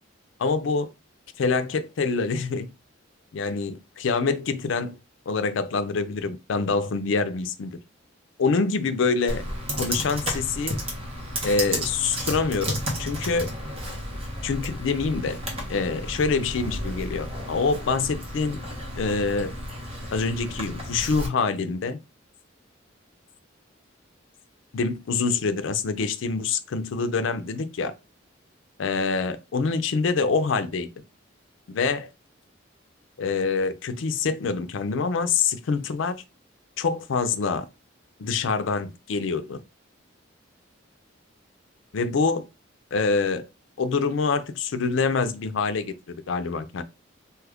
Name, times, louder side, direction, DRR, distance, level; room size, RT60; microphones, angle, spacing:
voice 1, 0.4-0.9 1.4-2.7 3.3-5.0 5.3-7.8 8.4-9.4 9.7-10.8 11.4-13.5 14.4-15.4 15.7-18.6 19.0-19.5 20.1-22.0 24.7-27.9 28.8-30.9 31.7-32.1 33.2-36.2 36.8-37.7 38.2-39.6 41.9-42.4 42.9-43.5 43.8-46.8, left 4 dB, 75° left, 0.4 m, -25 dB
Computer keyboard, 9.3-21.3, equal, 30° right, 1.0 m, -32 dB
2.7 x 2.4 x 3.4 m
head